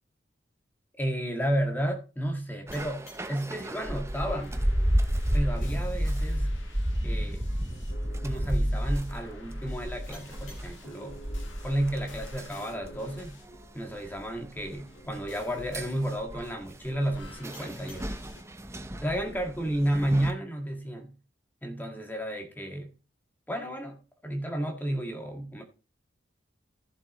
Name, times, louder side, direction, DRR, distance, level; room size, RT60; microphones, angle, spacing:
voice 1, 1.0-4.6 5.3-6.5 7.0-7.4 8.2-11.2 11.6-13.4 13.7-18.1 19.0-21.1 21.6-22.9 23.5-25.6, right 1 dB, 10° left, 1.7 m, -32 dB
sound 1, 2.7-5.9 10.1-13.3 17.5-20.5, left 2 dB, 65° left, 5.8 m, -59 dB
sound 2, 2.7-20.3, equal, 15° right, 0.8 m, -32 dB
sound 3, 4.1-13.8 14.6-16.2 17.0-18.4, left 1 dB, 80° left, 1.7 m, -52 dB
14.5 x 7.4 x 3.0 m
head